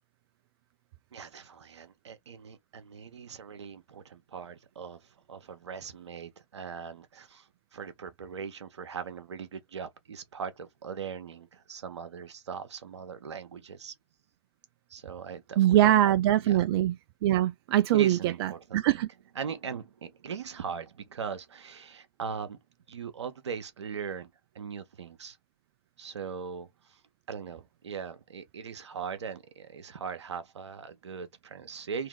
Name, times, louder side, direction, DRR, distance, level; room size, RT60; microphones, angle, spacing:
voice 1, 1.1-13.9 14.9-16.1 16.4-16.6 17.9-19.0 19.3-22.6 22.9-24.3 24.5-25.4 26.0-27.0 27.3-32.1, right 6 dB, 85° right, 0.9 m, -40 dB
voice 2, 15.6-16.9 17.2-19.1, right 13 dB, 60° right, 0.4 m, -23 dB
2.9 x 2.7 x 3.7 m
hypercardioid pair, 105°, 14 cm